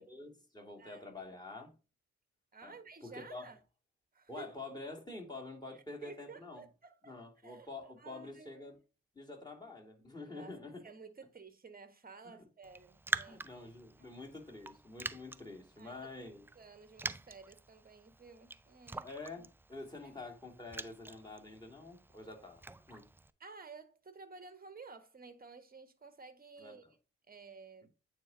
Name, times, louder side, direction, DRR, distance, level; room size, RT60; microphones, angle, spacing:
voice 1, 0.0-1.7 2.6-3.5 4.3-6.7 7.0-8.8 9.1-10.9 12.2-12.4 13.3-16.5 19.0-23.1 26.6-26.9, left 2 dB, 10° left, 2.8 m, -48 dB
voice 2, 2.5-3.6 4.1-4.5 6.0-7.2 7.4-7.7 8.0-8.5 10.3-10.5 10.8-13.5 14.0-14.2 15.8-15.9 16.5-19.1 20.0-20.1 23.4-26.8 27.3-27.9, right 4 dB, 25° right, 1.4 m, -53 dB
Raindrop, 12.6-23.3, right 2 dB, 5° right, 0.3 m, -45 dB
9.1 x 4.6 x 2.7 m
hypercardioid pair, 45°, 38 cm